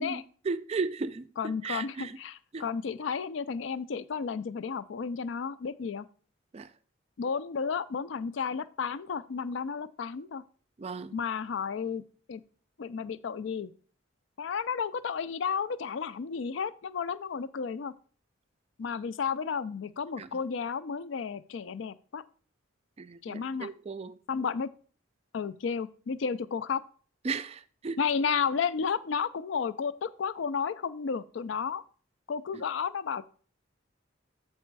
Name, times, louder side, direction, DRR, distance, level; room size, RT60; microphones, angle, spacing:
voice 1, 0.0-2.2 2.5-2.6 6.5-6.7 10.8-11.2 20.2-20.3 23.0-24.2 27.2-28.0 32.5-32.6, right 4 dB, 30° right, 0.3 m, -35 dB
voice 2, 1.4-6.1 7.2-10.4 11.1-12.0 12.3-12.4 12.8-13.7 14.4-17.9 18.8-22.2 23.2-23.7 24.3-24.7 25.3-26.8 28.0-31.8 32.3-33.2, left 6 dB, 65° left, 0.4 m, -32 dB
8.2 x 4.2 x 4.6 m
head